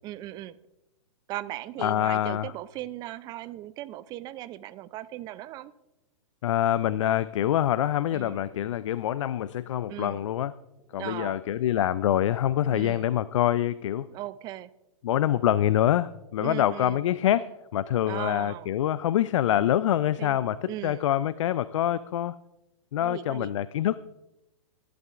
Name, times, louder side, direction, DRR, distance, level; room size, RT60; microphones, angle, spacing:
voice 1, 0.0-0.6 1.3-5.7 8.1-8.5 9.9-10.3 11.0-11.4 12.7-13.1 14.1-14.7 16.4-17.0 18.1-18.7 20.2-20.4 20.7-21.1 23.0-23.5, right 14 dB, 25° right, 15 dB, 0.4 m, -38 dB
voice 2, 1.8-2.5 6.4-10.5 10.9-14.1 15.0-22.3 22.9-24.1, left 11 dB, 65° left, 17 dB, 0.4 m, -25 dB
15.0 x 11.0 x 2.5 m, 0.93 s
hypercardioid pair, 125°, 17 cm